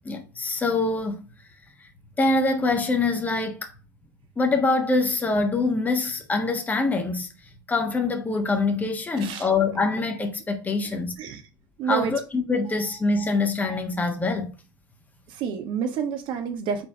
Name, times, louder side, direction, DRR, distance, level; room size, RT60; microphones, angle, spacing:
voice 1, 0.0-1.2 1.8-1.9 2.2-3.7 4.4-7.3 7.7-11.1 11.8-14.5, left 3 dB, 15° left, 1.3 m, -24 dB
voice 2, 9.2-9.5 11.2-11.4 11.8-12.1 15.3-16.8, right 7 dB, 50° right, 1.3 m, -28 dB
4.6 x 4.2 x 5.0 m
hypercardioid pair, 85°, 11 cm